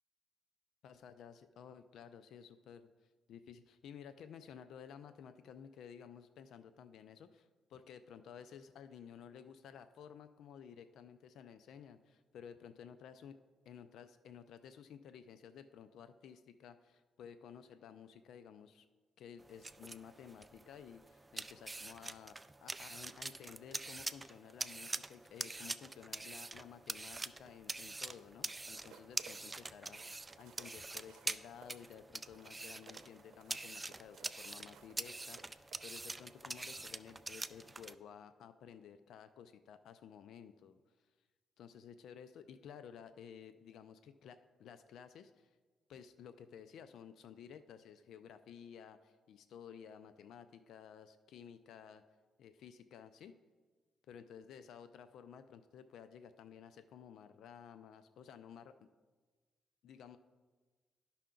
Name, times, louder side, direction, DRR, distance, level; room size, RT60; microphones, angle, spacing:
voice 1, 0.8-2.9 3.3-13.4 13.7-18.9 19.2-40.8 41.6-45.6 45.9-52.0 52.4-53.4 54.1-58.8 59.8-60.2, left 8 dB, 80° left, 11 dB, 0.4 m, -54 dB
sound 1, 19.4-37.9, right 2 dB, 20° right, 0.3 m, -45 dB
sound 2, 28.5-36.7 37.1-37.3, right 7 dB, 80° right, 0.7 m, -61 dB
11.5 x 5.7 x 3.8 m, 1.3 s
cardioid pair, 95°, 0 cm